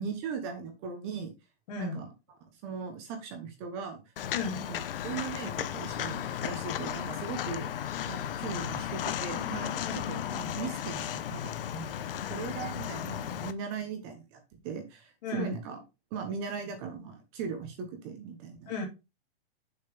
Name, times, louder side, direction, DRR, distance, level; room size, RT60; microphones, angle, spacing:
voice 1, 0.0-1.3 1.8-2.1 2.6-4.0 4.7-4.8 5.0-7.7 8.1-15.8 16.1-18.7, right 6 dB, 25° right, 6 dB, 1.0 m, -39 dB
voice 2, 1.7-2.0 4.3-4.7 9.8-10.0 15.2-15.5 18.7-18.9, left 4 dB, 45° left, 2 dB, 2.7 m, -34 dB
Walk footsteps, 4.2-13.5, left 10 dB, 65° left, 0.8 m, -35 dB
6.7 x 6.6 x 3.4 m, 0.26 s
supercardioid pair, 175°, 31 cm